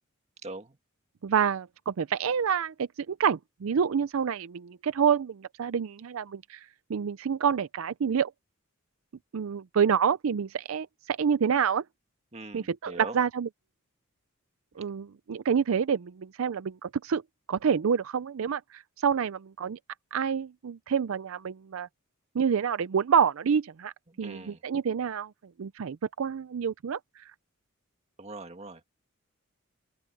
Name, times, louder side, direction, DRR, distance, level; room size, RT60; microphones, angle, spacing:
voice 1, 0.4-0.8 12.3-13.2 24.1-24.6 28.2-28.8, right 2 dB, 30° right, 1.9 m, -41 dB
voice 2, 1.2-8.3 9.3-11.8 12.5-13.5 14.8-17.2 17.5-19.8 20.1-21.9 22.3-23.9 24.2-25.3 25.6-27.2, right 7 dB, 75° right, 0.4 m, -28 dB
open air
head